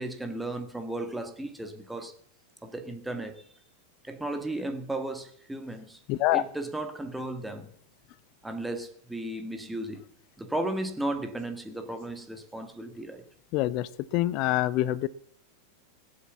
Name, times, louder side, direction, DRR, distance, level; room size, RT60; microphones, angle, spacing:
voice 1, 0.0-2.1 2.6-3.4 4.0-6.0 6.3-7.7 8.4-10.0 10.4-13.2, right 1 dB, 5° right, 1.9 m, -35 dB
voice 2, 6.1-6.4 13.5-15.1, left 16 dB, 40° left, 0.6 m, -26 dB
20.0 x 7.6 x 7.1 m
figure-of-eight pair, 90°, 0 cm